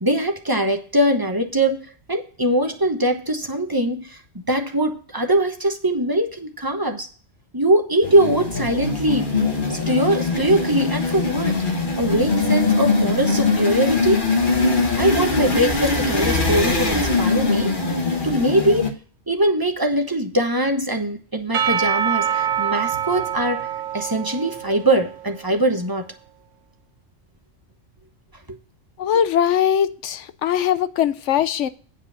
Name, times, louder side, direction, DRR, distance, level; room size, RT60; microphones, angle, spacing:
voice 1, 0.0-4.2 4.5-7.1 7.5-9.3 9.7-11.6 12.0-14.2 14.9-17.7 18.2-19.0 19.3-23.7 23.9-26.0 28.5-28.6 29.1-29.2, right 1 dB, 20° right, 1.0 m, -21 dB
sound 1, 8.0-18.9, left 3 dB, 45° left, 1.3 m, -22 dB
Percussion / Church bell, 21.5-25.5, right 9 dB, 75° right, 1.2 m, -25 dB
voice 2, 29.0-31.7, left 9 dB, 70° left, 1.0 m, -20 dB
9.0 x 4.9 x 6.9 m
omnidirectional pair, 1.3 m